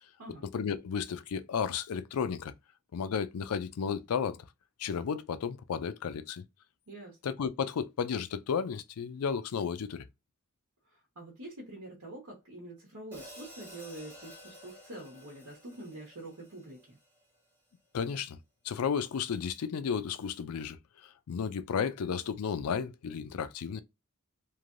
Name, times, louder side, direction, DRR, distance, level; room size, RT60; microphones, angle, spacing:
voice 1, 0.5-2.5 2.9-4.4 4.8-6.4 7.2-10.0 17.9-18.4 18.6-20.8 21.0-23.8, left 6 dB, 85° left, 0.4 m, -33 dB
voice 2, 6.9-7.2 10.8-17.0, right 1 dB, 90° right, 1.2 m, -46 dB
Hi-hat, 13.1-17.4, equal, 10° right, 1.0 m, -52 dB
3.1 x 2.6 x 2.5 m
head